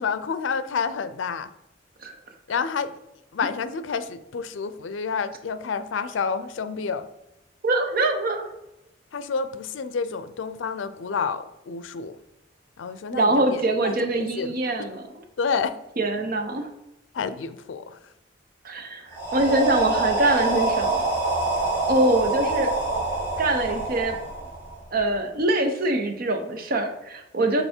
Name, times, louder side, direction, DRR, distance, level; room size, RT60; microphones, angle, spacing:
voice 1, 0.0-1.5 2.5-3.0 3.3-7.1 9.1-12.2 12.8-14.5 15.4-15.7 17.1-18.0, left 5 dB, 85° left, 13 dB, 0.4 m, -29 dB
voice 2, 7.6-8.5 13.1-15.1 16.0-16.7 18.6-21.0 21.9-22.7 23.4-24.2 24.9-27.6, right 2 dB, 50° right, 6 dB, 0.7 m, -23 dB
sound 1, 19.1-25.0, right 2 dB, 10° right, 1.9 m, -26 dB
5.6 x 4.1 x 4.3 m, 0.89 s
head